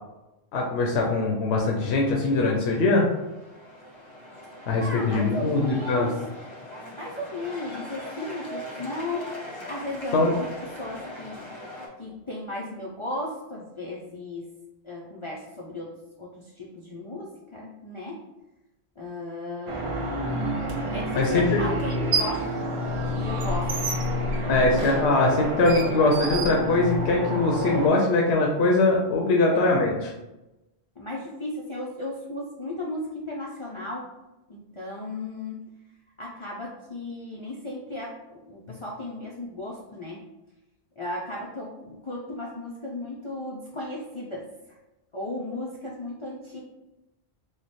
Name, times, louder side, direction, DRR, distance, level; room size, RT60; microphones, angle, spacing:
voice 1, 0.5-3.1 4.7-6.1 10.1-10.3 21.2-21.5 24.5-30.1, left 2 dB, 85° left, -1 dB, 0.9 m, -22 dB
sound 1, 3.0-11.9, equal, 30° left, 0.8 m, -41 dB
voice 2, 4.8-6.2 6.9-9.4 9.7-11.4 12.0-14.6 14.8-18.3 19.0-19.9 20.9-23.8 24.4-24.6 29.3-29.5 31.0-34.1 34.5-35.6 36.2-40.2 41.0-44.5 45.1-46.6, left 1 dB, 50° left, -4 dB, 0.3 m, -35 dB
sound 2, 19.7-27.9, equal, 50° right, 0.4 m, -29 dB
sound 3, 20.7-20.8 21.8-22.5 22.8-27.2, right 3 dB, 70° right, 0.9 m, -31 dB
3.2 x 2.1 x 4.0 m, 0.99 s
omnidirectional pair, 1.1 m